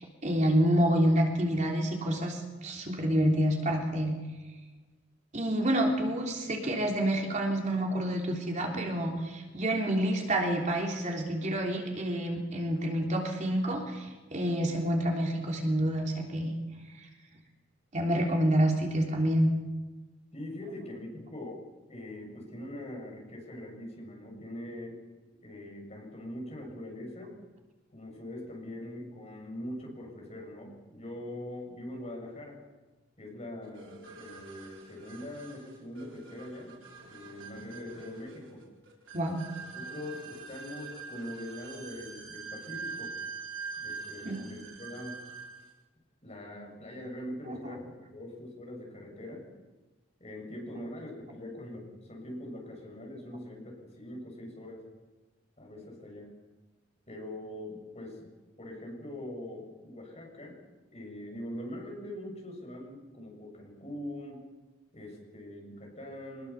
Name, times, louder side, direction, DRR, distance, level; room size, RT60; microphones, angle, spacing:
voice 1, 0.0-4.2 5.3-16.5 17.0-17.1 17.9-19.5 39.1-39.4 44.2-44.4 47.5-47.7, right 1 dB, 35° right, 1 dB, 3.4 m, -28 dB
voice 2, 20.3-21.6 21.9-25.0 25.4-27.4 27.9-32.6 33.2-36.8 37.1-38.6 39.8-43.1 43.8-45.2 46.2-49.4 50.2-54.8 55.6-56.3 57.1-58.3 58.6-60.6 60.9-64.4 64.9-66.5, left 1 dB, 35° left, 0 dB, 7.1 m, -42 dB
sound 1, 33.7-45.7, right 5 dB, 65° right, 4.5 m, -44 dB
24.5 x 20.5 x 7.1 m, 1.2 s
head